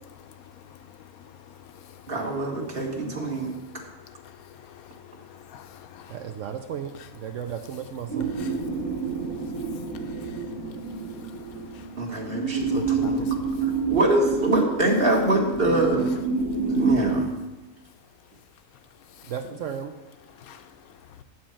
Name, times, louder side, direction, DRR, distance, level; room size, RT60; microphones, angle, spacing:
voice 1, 2.1-3.5 12.0-13.2 13.6-16.0 16.6-17.3, right 2 dB, 40° right, 1.5 m, -24 dB
voice 2, 4.7-6.3 8.3-8.6 9.7-9.9 10.2-10.4 11.4-11.5 11.7-11.9 12.7-13.5 20.4-20.6, left 9 dB, 75° left, 1.0 m, -43 dB
voice 3, 6.1-8.3 15.7-16.2 19.3-19.9, right 8 dB, 65° right, 0.9 m, -34 dB
sound 1, 8.1-17.2, right 4 dB, 85° right, 2.2 m, -28 dB
9.0 x 4.4 x 7.5 m
omnidirectional pair, 1.6 m